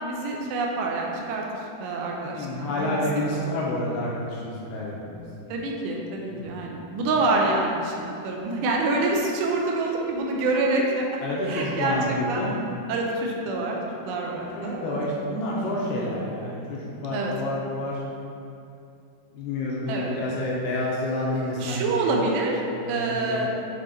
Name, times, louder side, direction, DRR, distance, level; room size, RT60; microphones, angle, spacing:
voice 1, 0.0-1.4 1.8-3.3 5.5-11.1 11.5-12.0 12.3-12.4 12.9-15.0 15.4-15.5 17.1-17.3 19.9-20.1 21.6-22.6 22.9-23.5, right 2 dB, 80° right, -1 dB, 2.8 m, -26 dB
voice 2, 2.3-5.5 6.4-6.7 7.1-7.2 11.2-12.5 14.3-18.0 19.3-22.1 22.8-23.5, left 1 dB, 80° left, -4 dB, 2.5 m, -29 dB
9.0 x 3.9 x 4.0 m, 2.6 s
omnidirectional pair, 5.0 m